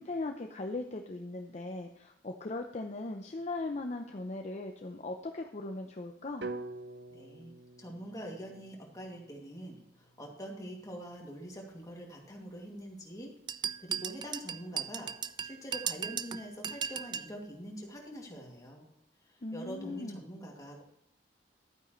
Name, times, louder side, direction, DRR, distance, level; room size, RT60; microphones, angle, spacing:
voice 1, 0.0-6.5 19.4-20.2, left 2 dB, 40° left, 4 dB, 0.6 m, -39 dB
sound 1, 6.4-10.5, right 2 dB, 70° right, 0.7 m, -46 dB
voice 2, 7.1-13.3 13.8-18.9 19.2-20.8, equal, 20° left, -1 dB, 2.4 m, -45 dB
sound 2, 13.5-17.3, right 8 dB, 25° right, 0.3 m, -37 dB
12.0 x 9.1 x 3.1 m, 0.80 s
head